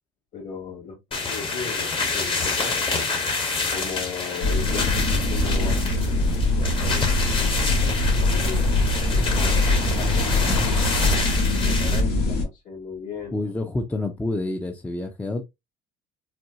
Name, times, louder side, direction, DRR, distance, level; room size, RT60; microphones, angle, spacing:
voice 1, 0.3-2.8 3.7-7.6 8.1-8.7 8.9-10.5 11.6-13.4, left 5 dB, 50° left, 2.4 m, -37 dB
sound 1, 1.1-12.0, left 4 dB, 30° left, 1.1 m, -28 dB
sound 2, 4.4-12.4, left 2 dB, 80° left, 1.6 m, -22 dB
voice 2, 10.3-10.7 13.3-15.4, left 2 dB, 10° left, 0.5 m, -28 dB
4.2 x 2.3 x 2.6 m
supercardioid pair, 105°, 17 cm